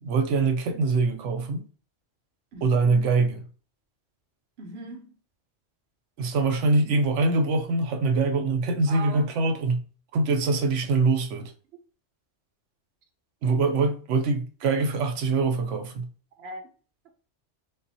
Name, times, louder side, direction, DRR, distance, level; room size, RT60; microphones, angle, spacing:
voice 1, 0.0-1.7 2.6-3.4 6.2-9.8 10.1-11.5 13.4-16.1, right 3 dB, 85° right, 1.0 m, -24 dB
voice 2, 2.5-3.1 4.6-5.2 8.9-9.4 13.4-13.6 16.4-16.7, right 3 dB, 65° right, 0.9 m, -40 dB
5.3 x 2.4 x 2.7 m
omnidirectional pair, 1.2 m